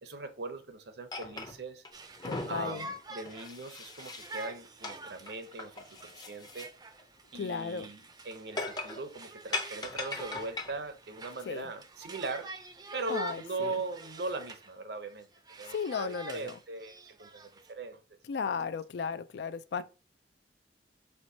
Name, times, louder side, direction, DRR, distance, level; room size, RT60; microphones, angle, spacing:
voice 1, 0.0-1.8 2.5-6.7 7.3-12.5 12.9-15.3 15.6-18.0, right 3 dB, 65° right, 0.7 m, -40 dB
sound 1, 1.1-1.9 2.2-4.5 4.8-5.0 5.3-6.7 7.0-7.1 8.6-9.0 9.5-10.8, left 2 dB, 25° left, 0.6 m, -39 dB
Conversation, 1.9-14.7 15.1-17.7, right 3 dB, 25° right, 0.5 m, -47 dB
voice 2, 2.3-2.9 7.3-7.9 11.5-11.7 13.1-13.8 15.7-16.6 18.3-19.8, left 6 dB, 75° left, 0.4 m, -35 dB
4.5 x 4.2 x 2.7 m
head